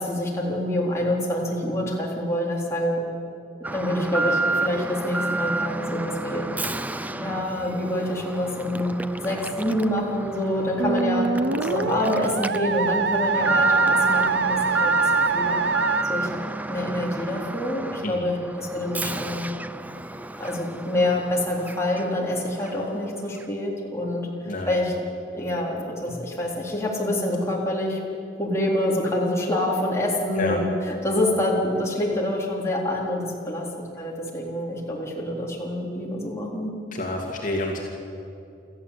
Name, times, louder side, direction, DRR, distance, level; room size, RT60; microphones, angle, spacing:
voice 1, 0.0-3.0 3.7-6.5 7.1-11.3 11.6-15.6 16.0-16.3 16.7-19.5 20.4-24.3 24.7-25.1 25.3-28.0 28.4-33.7 34.0-36.7, left 1 dB, 15° left, -3 dB, 4.0 m, -26 dB
Alarm, 3.6-22.3 22.6-22.7 23.4-23.5, right 2 dB, 10° right, 0.5 m, -30 dB
Musical instrument, 10.8-16.0, right 4 dB, 75° right, 0.7 m, -24 dB
voice 2, 36.9-37.9, left 2 dB, 50° left, -1 dB, 2.5 m, -28 dB
27.5 x 14.0 x 8.4 m, 2.6 s
head